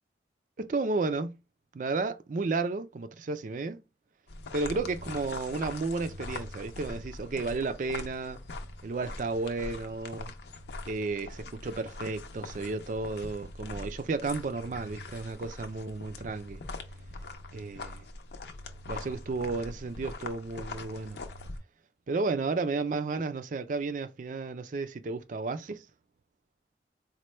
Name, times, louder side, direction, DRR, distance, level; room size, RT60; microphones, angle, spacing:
voice 1, 0.6-1.4 1.7-3.8 4.5-8.4 8.8-10.3 10.9-16.6 17.5-18.1 18.9-21.2 22.1-25.8, right 3 dB, 45° right, 0.4 m, -33 dB
sound 1, 4.3-21.6, left 2 dB, 70° left, 0.6 m, -42 dB
4.2 x 2.2 x 3.0 m
head